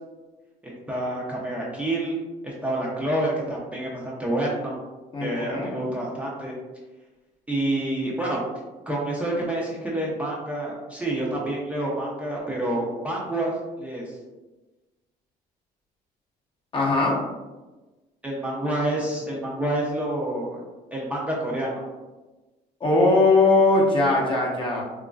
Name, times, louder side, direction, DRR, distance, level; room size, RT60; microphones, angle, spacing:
voice 1, 0.6-2.2 2.4-4.8 5.2-6.5 7.5-8.4 8.9-13.5 13.8-14.0 18.2-20.6 20.9-21.8, right 1 dB, 10° right, -5 dB, 0.6 m, -28 dB
voice 2, 5.1-5.8 16.7-17.2 22.8-24.8, left 2 dB, 30° left, -3 dB, 0.7 m, -20 dB
2.9 x 2.5 x 2.3 m, 1.2 s
cardioid pair, 110°, 17 cm